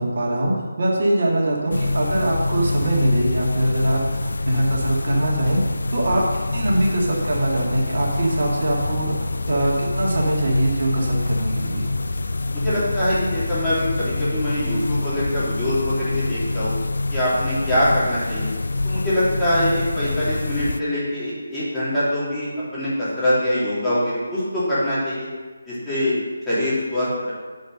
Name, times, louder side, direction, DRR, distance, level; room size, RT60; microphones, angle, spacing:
voice 1, 0.0-5.6 5.9-11.9, right 1 dB, 55° right, -3 dB, 2.3 m, -22 dB
sound 1, 1.7-20.8, left 2 dB, 70° left, 0.4 m, -26 dB
sound 2, 2.3-16.7, left 2 dB, 40° left, 1.6 m, -38 dB
voice 2, 12.5-16.7 17.1-18.5 18.8-25.3 25.6-26.1 26.4-27.3, left 1 dB, 5° left, -14 dB, 3.2 m, -23 dB
8.8 x 5.4 x 6.6 m, 1.4 s
figure-of-eight pair, 160°, 0 cm